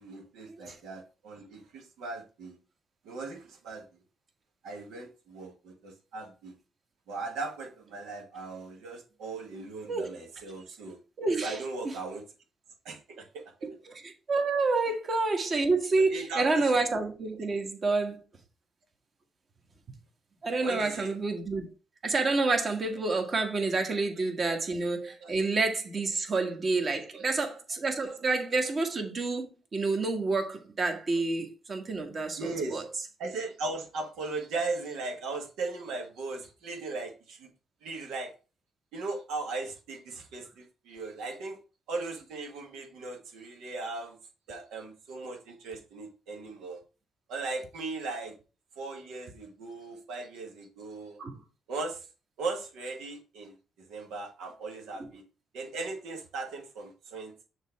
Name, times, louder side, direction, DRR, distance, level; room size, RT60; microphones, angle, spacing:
voice 1, 0.0-2.6 3.0-3.8 4.6-6.5 7.1-11.0 11.3-12.2 12.9-13.4 16.0-16.7 20.6-21.1 25.2-25.4 26.1-26.3 27.1-27.2 32.4-32.8 33.2-37.5 37.8-38.3 38.9-41.6 41.9-44.2 44.5-46.8 47.3-48.3 48.8-51.2 51.7-52.1 52.4-53.6 53.9-55.2 55.5-57.4, right 3 dB, 90° right, 1.8 m, -38 dB
voice 2, 11.2-11.6 11.8-11.9 13.6-18.2 20.4-21.7 22.0-32.8 51.2-51.3, right 3 dB, 40° right, 1.5 m, -29 dB
6.5 x 3.2 x 4.6 m
cardioid pair, 90°, 0 cm